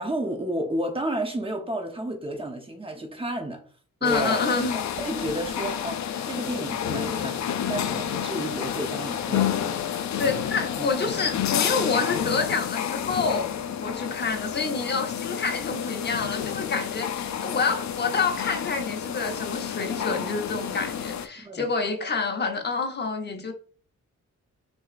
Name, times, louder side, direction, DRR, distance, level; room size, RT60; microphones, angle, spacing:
voice 1, 0.0-3.6 4.0-4.4 4.7-7.4 7.7-9.5 10.8-10.9 21.4-21.7, right 1 dB, 20° right, 0.9 m, -31 dB
sound 1, 4.0-21.3, left 9 dB, 65° left, 0.5 m, -30 dB
voice 2, 4.0-4.8 10.2-13.5 13.8-23.5, left 4 dB, 35° left, 0.8 m, -28 dB
6.1 x 3.0 x 2.5 m
wide cardioid pair, 145°, 31 cm